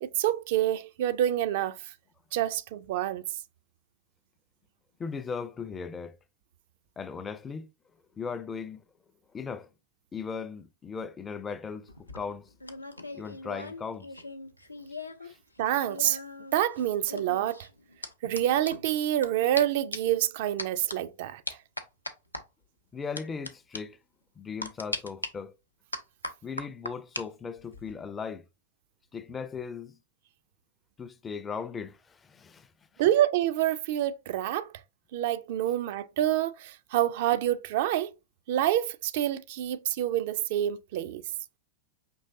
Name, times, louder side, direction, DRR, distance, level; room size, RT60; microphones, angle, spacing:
voice 1, 0.0-1.8 2.3-3.2 15.6-16.2 16.5-17.7 18.2-21.4 33.0-34.7 35.1-38.1 38.5-41.2, right 12 dB, 50° right, 0.3 m, -27 dB
voice 2, 5.0-6.2 7.0-7.7 8.2-8.8 9.3-9.7 10.1-12.5 13.1-14.1 15.3-15.4 22.9-24.0 24.4-25.5 26.4-28.4 29.1-30.0 31.0-32.7, left 5 dB, 20° left, 0.4 m, -37 dB
sound 1, 11.9-15.3 15.6-19.3 19.6-19.7 19.9-20.2 20.6-21.0 21.5-22.4 23.2-23.5 23.7-23.8 24.6-25.3 25.9-27.2 27.6-27.9, left 2 dB, 85° left, 0.5 m, -39 dB
5.3 x 3.1 x 2.6 m
figure-of-eight pair, 90°, 0 cm